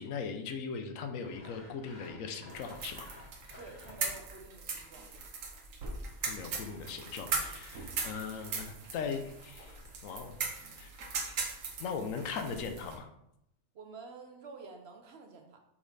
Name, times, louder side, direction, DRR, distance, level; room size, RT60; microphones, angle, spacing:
voice 1, 0.0-3.1 6.3-10.4 10.8-10.9 11.8-13.1, left 5 dB, 90° left, 6 dB, 1.1 m, -39 dB
Sawing, 1.2-4.4 5.8-10.4, left 1 dB, 35° left, 1.2 m, -56 dB
sound 1, 2.5-13.0, right 4 dB, 80° right, 1.3 m, -39 dB
voice 2, 3.6-5.1 13.7-15.6, right 4 dB, 60° right, 4 dB, 0.9 m, -49 dB
5.9 x 4.1 x 4.0 m, 0.78 s
omnidirectional pair, 1.4 m